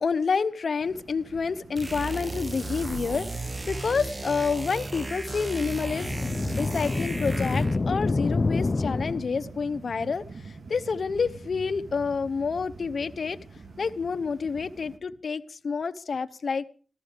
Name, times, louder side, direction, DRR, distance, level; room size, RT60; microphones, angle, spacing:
voice 1, 0.0-6.1 6.6-13.4 13.8-16.6, left 5 dB, 75° left, 11 dB, 0.8 m, -28 dB
sound 1, 0.8-15.0, right 4 dB, 75° right, 1.3 m, -47 dB
sound 2, 1.8-7.9, right 2 dB, 35° right, 0.9 m, -34 dB
sound 3, 5.8-9.6, left 3 dB, 45° left, 0.6 m, -27 dB
14.5 x 13.0 x 5.0 m, 0.38 s
wide cardioid pair, 70°, 0 cm